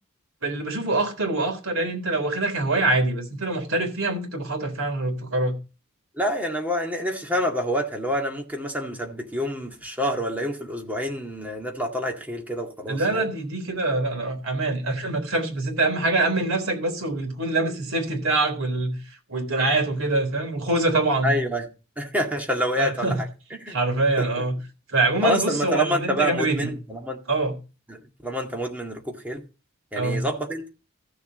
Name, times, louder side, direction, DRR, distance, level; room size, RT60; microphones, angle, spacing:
voice 1, 0.4-5.6 12.9-19.0 19.3-21.3 22.8-23.2 23.7-24.6 24.9-26.7 27.3-27.5 30.0-30.2, right 2 dB, 70° right, 3.7 m, -24 dB
voice 2, 6.2-13.3 21.2-21.6 22.0-23.3 23.6-23.8 24.2-24.4 25.2-27.2 27.9-29.4 29.9-30.7, equal, 10° right, 2.0 m, -27 dB
14.5 x 7.1 x 4.1 m
head